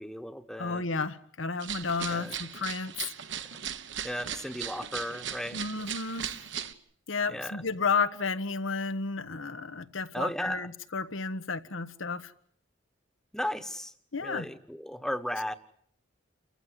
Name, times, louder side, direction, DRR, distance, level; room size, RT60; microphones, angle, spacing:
voice 1, 0.0-0.8 2.1-2.3 4.0-5.6 7.3-7.6 10.1-10.7 13.3-13.9 14.2-15.5, equal, 5° left, 11 dB, 1.2 m, -35 dB
voice 2, 0.6-3.1 5.5-6.3 7.1-12.3 14.1-14.5, left 4 dB, 90° left, 12 dB, 1.4 m, -32 dB
sound 1, 1.6-6.7, right 9 dB, 70° right, 1.4 m, -38 dB
29.5 x 15.0 x 9.6 m, 0.64 s
head